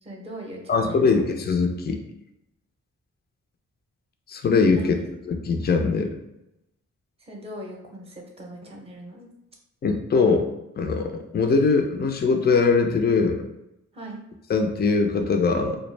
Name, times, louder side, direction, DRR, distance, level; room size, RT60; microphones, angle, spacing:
voice 1, 0.0-1.3 4.7-5.1 7.2-9.3 13.9-14.2, right 1 dB, 20° right, 0 dB, 0.7 m, -40 dB
voice 2, 0.7-2.0 4.3-4.8 5.3-6.1 9.8-10.5 10.8-13.4 14.5-15.8, left 4 dB, 30° left, 4 dB, 0.4 m, -21 dB
2.3 x 2.0 x 3.2 m, 0.87 s
cardioid pair, 55°, 31 cm